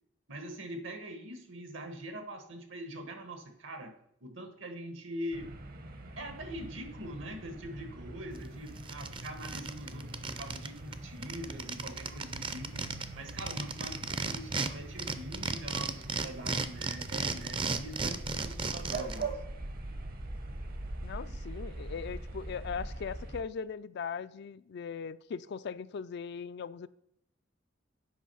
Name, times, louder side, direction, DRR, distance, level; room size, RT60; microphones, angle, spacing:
voice 1, 0.3-5.5 6.2-12.8 13.1-19.4, equal, 75° right, 1.4 m, -43 dB
sound 1, 5.3-23.4, right 2 dB, 50° right, 0.9 m, -43 dB
sound 2, 8.4-8.5 8.8-10.7 10.9-11.0 11.2-14.7 15.0-19.2, right 4 dB, 25° right, 0.5 m, -34 dB
voice 2, 21.0-26.9, left 6 dB, 60° left, 0.4 m, -39 dB
8.6 x 5.4 x 5.5 m
head